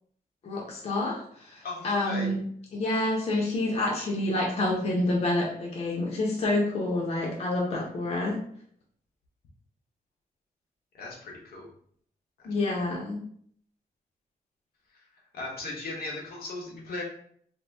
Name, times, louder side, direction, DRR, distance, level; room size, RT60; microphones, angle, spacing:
voice 1, 0.4-2.4 2.7-8.4 12.4-13.2, left 2 dB, 40° left, -2 dB, 0.6 m, -28 dB
voice 2, 1.6-2.3 10.9-11.7 12.4-12.5 15.3-17.0, left 2 dB, 80° left, -2 dB, 1.0 m, -37 dB
2.8 x 2.4 x 3.4 m, 0.62 s
wide cardioid pair, 165°, 15 cm